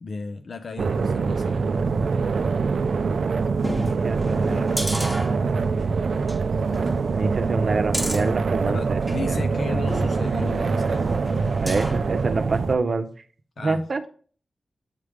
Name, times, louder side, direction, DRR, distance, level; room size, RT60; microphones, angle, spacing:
voice 1, 0.0-1.6 8.6-11.4 13.6-13.8, left 4 dB, 65° left, 7 dB, 0.5 m, -35 dB
sound 1, 0.8-12.8, right 4 dB, 75° right, 0.3 m, -24 dB
sound 2, 3.6-5.8 6.2-6.4 6.7-9.2 9.9-12.1 12.5-12.6, equal, ahead, 1.2 m, -33 dB
voice 2, 3.7-5.5 7.1-9.0 9.3-9.4 11.6-13.1 13.6-14.0, right 3 dB, 55° right, 8 dB, 0.7 m, -27 dB
8.2 x 3.4 x 5.0 m, 0.42 s
wide cardioid pair, 130°, 0 cm